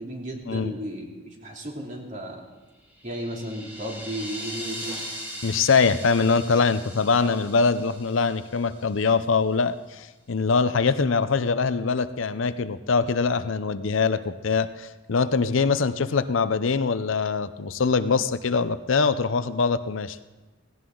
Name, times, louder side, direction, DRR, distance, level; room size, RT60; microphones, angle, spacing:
voice 1, 0.0-2.4 3.0-5.1 7.2-7.5, right 1 dB, 40° right, -1 dB, 2.8 m, -34 dB
sound 1, 2.8-9.0, equal, 10° right, 2.1 m, -39 dB
voice 2, 5.4-20.2, left 5 dB, 75° left, 12 dB, 0.6 m, -23 dB
17.5 x 17.0 x 3.9 m, 1.2 s
head